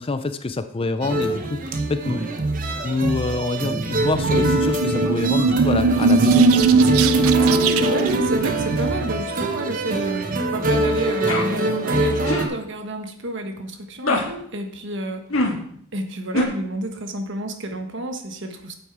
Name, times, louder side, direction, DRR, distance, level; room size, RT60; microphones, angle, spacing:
voice 1, 0.0-2.2 2.8-7.0, left 3 dB, 25° left, 11 dB, 0.4 m, -26 dB
sound 1, 1.0-12.5, right 1 dB, 40° right, 1.0 m, -24 dB
sound 2, 3.8-9.2, right 4 dB, 80° right, 0.6 m, -19 dB
voice 2, 7.4-15.3 15.9-18.8, right 1 dB, 55° right, 6 dB, 1.3 m, -30 dB
sound 3, 11.3-11.5 12.3-12.5 14.0-14.3 15.3-15.6 16.3-16.4, left 2 dB, 70° left, 1.6 m, -22 dB
8.6 x 8.0 x 4.8 m, 0.65 s
head